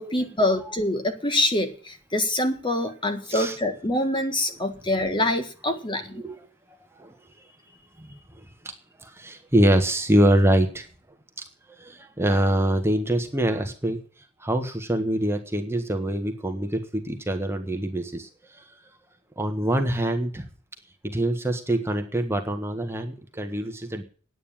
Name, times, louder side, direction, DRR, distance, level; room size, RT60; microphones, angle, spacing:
voice 1, 0.0-6.2, left 1 dB, 25° left, 7 dB, 1.8 m, -25 dB
voice 2, 9.0-10.9 11.8-14.0 14.4-18.6 19.4-20.4 21.0-24.0, right 1 dB, 10° right, 5 dB, 1.4 m, -24 dB
9.5 x 9.3 x 8.8 m, 0.41 s
head